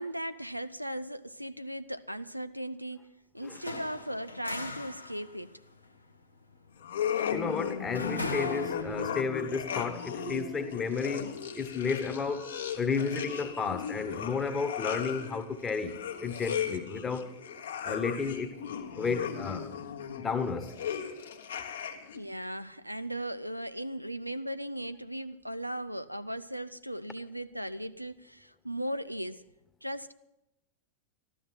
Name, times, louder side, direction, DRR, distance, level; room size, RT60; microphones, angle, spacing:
voice 1, 0.0-3.1 3.3-5.6 22.1-29.4 29.8-30.1, right 1 dB, 90° right, 0.4 m, -37 dB
sound 1, 3.4-9.3, left 2 dB, 85° left, 1.0 m, -41 dB
sound 2, 6.8-22.2, left 8 dB, 65° left, 1.3 m, -36 dB
voice 2, 7.3-17.3 17.8-18.6 19.0-19.7 20.2-20.7, left 5 dB, 15° left, 1.2 m, -32 dB
13.0 x 13.0 x 5.7 m
figure-of-eight pair, 90°, 0 cm